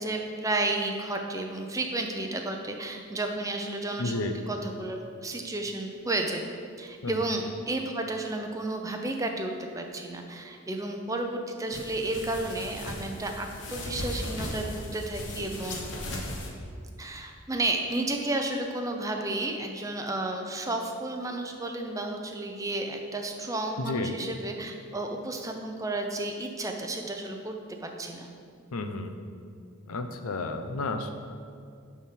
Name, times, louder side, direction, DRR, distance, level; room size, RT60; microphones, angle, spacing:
voice 1, 0.0-6.4 6.8-15.8 17.0-28.3, right 2 dB, 15° right, 3 dB, 0.6 m, -32 dB
voice 2, 4.0-4.3 7.0-7.1 23.8-24.1 28.7-29.2 29.9-31.1, left 2 dB, 90° left, 7 dB, 0.7 m, -31 dB
sound 1, 11.7-16.5, left 1 dB, 55° left, 1.1 m, -37 dB
10.5 x 3.6 x 5.7 m, 2.3 s
head